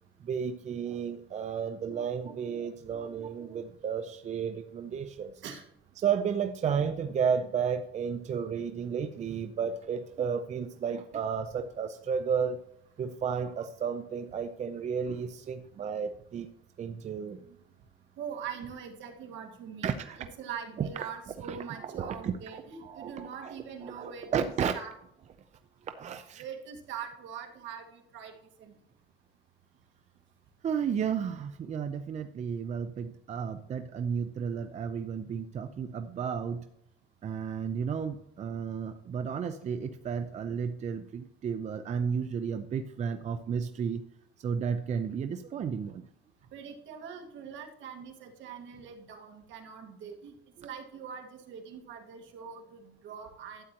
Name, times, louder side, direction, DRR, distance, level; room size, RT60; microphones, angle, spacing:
voice 1, 0.2-5.3 6.0-12.6 13.0-16.5 16.8-17.4 19.8-20.0 20.8-20.9 21.5-21.6 21.8-24.7 25.9-26.4 30.6-36.6 37.2-44.0 44.4-46.0, right 7 dB, 35° right, 8 dB, 0.6 m, -33 dB
voice 2, 18.2-24.9 26.4-28.3 28.6-28.7 46.5-50.3 50.6-53.6, right 7 dB, 70° right, 3 dB, 1.8 m, -43 dB
12.5 x 8.9 x 3.0 m, 0.76 s
cardioid pair, 135°, 20 cm